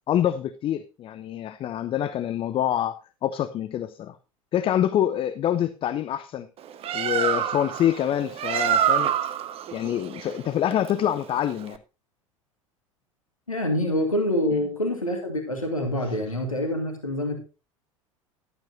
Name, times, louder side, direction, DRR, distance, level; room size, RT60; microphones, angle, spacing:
voice 1, 0.1-4.2 4.5-6.5 6.9-9.1 9.7-11.8 14.5-14.6 16.3-16.4, left 11 dB, 30° left, 0.7 m, -26 dB
Bird, 6.6-11.8, right 9 dB, 35° right, 1.1 m, -27 dB
voice 2, 13.5-17.4, left 1 dB, 85° left, 1.9 m, -26 dB
13.5 x 12.0 x 2.6 m
figure-of-eight pair, 75°, 17 cm